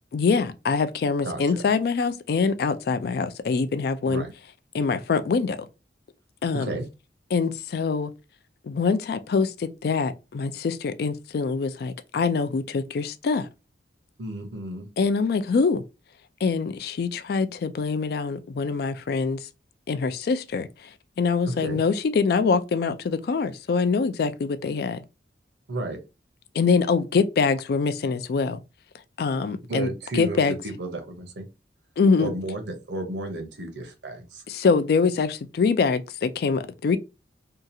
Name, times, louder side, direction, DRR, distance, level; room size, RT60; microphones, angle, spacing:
voice 1, 0.1-4.3 4.7-5.6 6.4-6.8 7.3-8.1 8.6-13.5 15.0-15.8 16.4-19.4 19.9-20.7 21.2-25.0 26.5-28.6 29.2-30.5 32.0-32.3 34.5-37.0, left 5 dB, 60° left, 0.3 m, -24 dB
voice 2, 6.5-6.9 14.2-14.9 21.6-21.8 25.7-26.0 29.6-31.5 32.2-34.4, right 1 dB, 75° right, 0.8 m, -33 dB
2.8 x 2.3 x 2.6 m
head